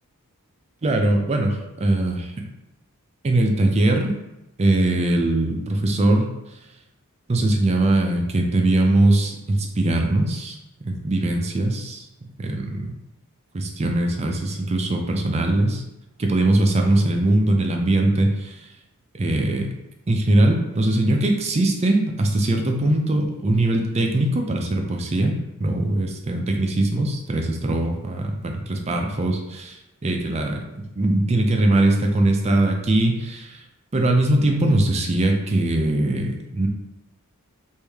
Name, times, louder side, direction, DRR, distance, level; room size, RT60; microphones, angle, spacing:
voice 1, 0.8-2.4 3.2-4.1 4.6-6.3 7.3-12.0 12.4-12.9 13.5-15.8 16.2-18.6 19.1-19.7 20.1-33.6 33.9-36.7, right 1 dB, 30° right, 3 dB, 0.4 m, -21 dB
3.2 x 2.6 x 3.4 m, 0.92 s
head